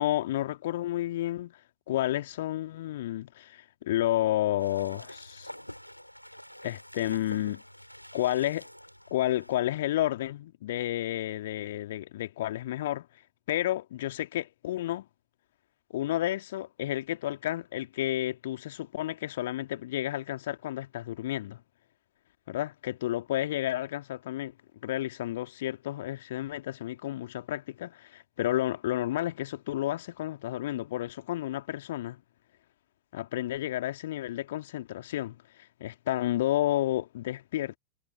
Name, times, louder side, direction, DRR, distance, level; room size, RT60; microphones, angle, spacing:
voice 1, 0.0-1.6 1.9-5.5 6.6-7.6 8.1-8.7 9.1-13.1 13.5-15.1 15.9-21.6 22.5-24.5 24.8-32.2 33.1-35.4 35.8-37.8, left 14 dB, 55° left, 2.3 m, -31 dB
sound 1, 4.6-9.6, equal, 90° left, 5.2 m, -47 dB
figure-of-eight pair, 90°, 0 cm